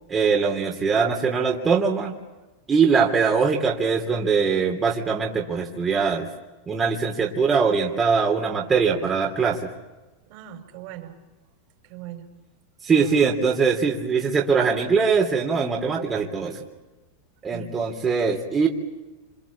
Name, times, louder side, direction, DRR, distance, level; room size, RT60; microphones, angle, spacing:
voice 1, 0.1-2.1 2.7-6.3 6.7-9.7 12.8-16.6 17.4-18.7, right 5 dB, 20° right, -1 dB, 3.3 m, -22 dB
voice 2, 10.3-11.2 11.8-12.3 12.9-13.2 17.5-17.8, right 12 dB, 55° right, 5 dB, 5.3 m, -39 dB
27.5 x 26.5 x 7.4 m, 1.1 s
supercardioid pair, 135°, 0 cm